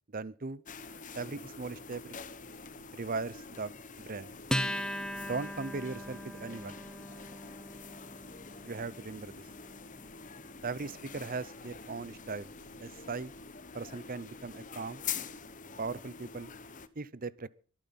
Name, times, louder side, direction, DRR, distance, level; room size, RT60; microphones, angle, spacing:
voice 1, 0.1-0.6 1.1-2.2 2.9-3.7 4.1-4.3 5.2-6.8 8.6-9.3 10.6-12.5 12.8-13.3 13.7-15.0 15.8-16.5 17.0-17.5, right 4 dB, 40° right, 0.7 m, -38 dB
sound 1, 0.7-16.9, left 6 dB, 35° left, 1.0 m, -46 dB
Acoustic guitar, 4.5-11.3, equal, 5° left, 0.8 m, -39 dB
23.0 x 9.0 x 5.8 m
head